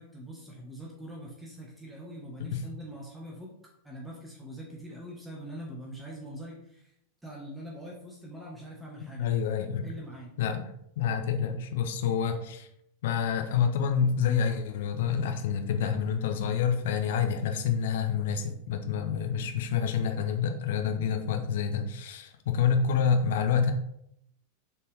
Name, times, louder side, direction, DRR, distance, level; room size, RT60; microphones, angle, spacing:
voice 1, 0.0-3.5 3.8-6.9 7.2-9.4 9.8-10.4, equal, 5° right, -3 dB, 1.5 m, -43 dB
voice 2, 9.2-9.8 10.4-10.6 11.0-12.7 13.0-23.7, left 7 dB, 55° left, 5 dB, 0.9 m, -28 dB
7.1 x 4.4 x 3.5 m, 0.76 s
figure-of-eight pair, 90°, 0 cm